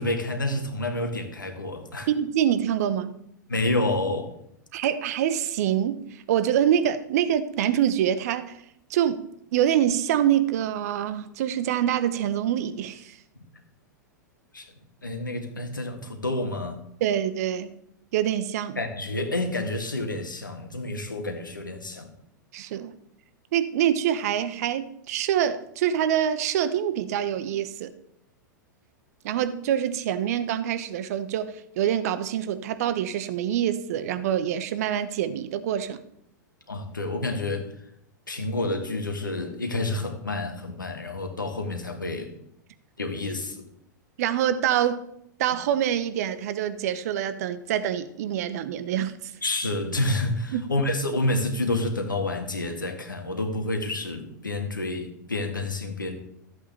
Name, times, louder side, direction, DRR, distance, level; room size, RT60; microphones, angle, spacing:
voice 1, 0.0-2.1 3.5-4.3 14.5-14.7 15.0-16.8 18.8-22.1 36.7-37.7 38.3-42.3 43.0-43.6 49.4-56.2, left 2 dB, 85° left, 4 dB, 1.8 m, -29 dB
voice 2, 2.1-3.2 4.7-8.6 8.9-9.2 9.5-13.2 17.0-17.7 18.1-18.8 22.5-22.9 23.5-27.9 29.2-36.0 44.2-45.0 45.4-49.3 50.5-50.7, right 10 dB, 55° right, 13 dB, 0.9 m, -25 dB
14.0 x 8.1 x 3.4 m, 0.73 s
figure-of-eight pair, 100°, 10 cm